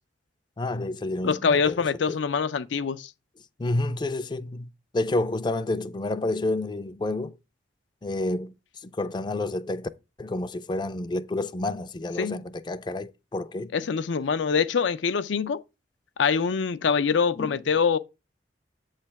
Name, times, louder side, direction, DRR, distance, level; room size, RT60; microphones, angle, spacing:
voice 1, 0.6-2.2 3.6-7.4 8.0-9.9 10.2-13.7 17.4-17.6, left 2 dB, 25° left, 0.4 m, -30 dB
voice 2, 1.2-3.1 12.2-12.4 13.7-15.6 16.2-18.0, left 6 dB, 85° left, 0.5 m, -24 dB
8.2 x 3.3 x 5.7 m
head